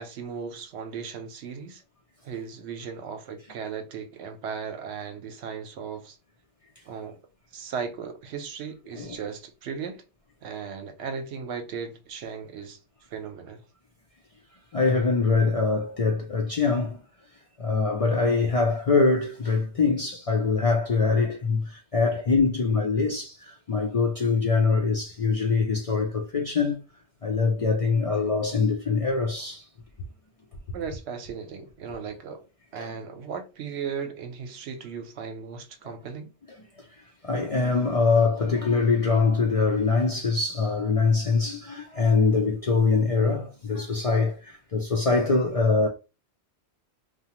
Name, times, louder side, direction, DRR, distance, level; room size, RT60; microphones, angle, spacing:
voice 1, 0.0-1.8 2.2-6.2 6.9-7.2 7.5-10.0 10.4-12.8 13.1-13.6 30.7-32.4 32.7-36.3, right 6 dB, 80° right, 0.9 m, -36 dB
voice 2, 14.7-17.0 17.6-26.8 27.2-29.7 32.8-32.9 35.8-35.9 37.2-45.9, left 4 dB, 50° left, 0.4 m, -23 dB
2.9 x 2.2 x 2.9 m
omnidirectional pair, 1.1 m